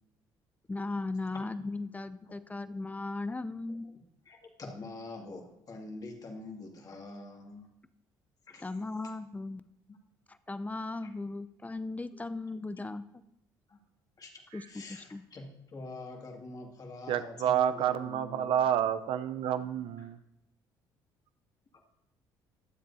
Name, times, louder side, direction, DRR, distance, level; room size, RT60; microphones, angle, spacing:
voice 1, 0.7-3.9 8.6-9.6 10.3-13.0 14.5-15.2, left 3 dB, 15° left, 13 dB, 0.7 m, -37 dB
voice 2, 4.3-7.7 8.5-8.7 13.7-13.8 14.2-18.6 20.0-20.1, left 2 dB, 40° left, 1 dB, 2.2 m, -45 dB
voice 3, 17.1-20.2, right 10 dB, 70° right, 12 dB, 0.7 m, -29 dB
22.0 x 7.6 x 2.8 m, 0.86 s
supercardioid pair, 70°, 10 cm